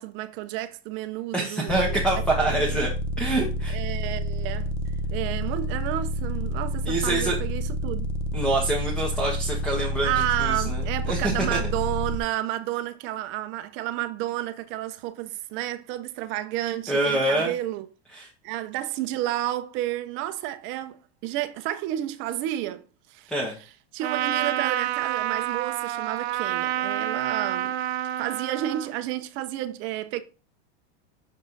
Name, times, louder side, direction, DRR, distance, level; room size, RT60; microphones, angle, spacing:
voice 1, 0.0-2.0 2.4-2.8 3.7-4.7 5.1-8.1 10.0-17.9 18.4-22.8 23.1-23.3 23.9-27.7 28.2-30.2, right 14 dB, 40° right, 0.6 m, -31 dB
voice 2, 1.3-2.9 3.2-3.8 6.8-7.4 8.3-10.1 10.4-11.6 16.9-17.5 18.1-18.3 23.3-23.5, right 2 dB, 5° left, 1.3 m, -26 dB
sound 1, 1.7-12.2, equal, 35° left, 1.0 m, -29 dB
Trumpet, 24.0-28.9, right 12 dB, 80° right, 0.7 m, -28 dB
6.4 x 5.4 x 4.0 m
supercardioid pair, 150°, 32 cm